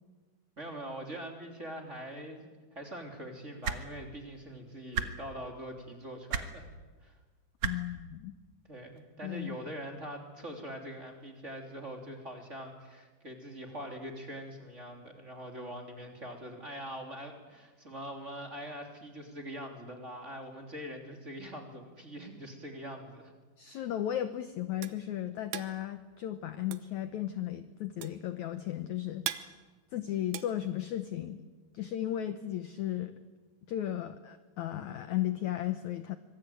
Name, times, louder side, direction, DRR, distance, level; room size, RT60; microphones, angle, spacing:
voice 1, 0.6-6.7 7.0-7.2 8.7-23.3 23.7-23.9, equal, 20° right, 2 dB, 3.1 m, -43 dB
sound 1, 3.6-3.8 4.9-5.1 6.3-6.5 7.6-7.7 9.0-9.1, right 8 dB, 55° right, 2.0 m, -31 dB
voice 2, 7.6-8.3 9.2-9.6 23.6-29.3 29.9-31.5 31.7-33.1 33.7-36.2, left 12 dB, 75° left, 10 dB, 1.8 m, -35 dB
sound 2, 24.2-31.3, right 13 dB, 75° right, 2.9 m, -42 dB
25.5 x 22.5 x 9.3 m, 1.3 s
omnidirectional pair, 4.6 m